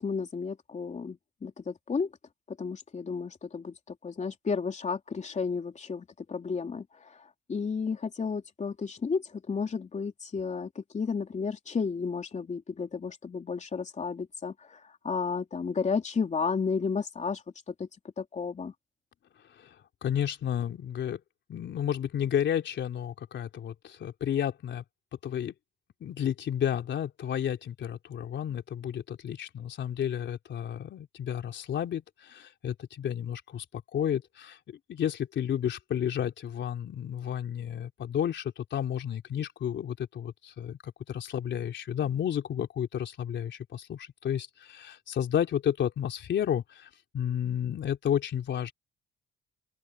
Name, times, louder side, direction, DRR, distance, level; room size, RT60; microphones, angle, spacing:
voice 1, 0.0-2.1 2.5-7.2 7.5-17.4 17.8-17.9 18.2-18.7, left 5 dB, 35° left, 3.5 m, -32 dB
voice 2, 20.0-21.2 21.5-24.8 25.2-25.5 26.0-48.7, left 9 dB, 65° left, 3.7 m, -32 dB
open air
cardioid pair, 90°, 20 cm